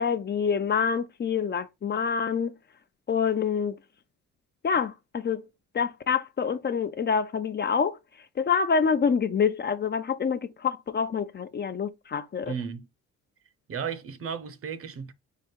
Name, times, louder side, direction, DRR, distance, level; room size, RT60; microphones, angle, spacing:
voice 1, 0.0-2.6 3.1-3.8 4.6-5.4 5.7-8.0 8.4-12.5, left 6 dB, 35° left, 0.5 m, -26 dB
voice 2, 12.5-12.9 13.7-15.1, right 6 dB, 50° right, 0.8 m, -34 dB
4.9 x 2.4 x 4.5 m
cardioid pair, 90°, 30 cm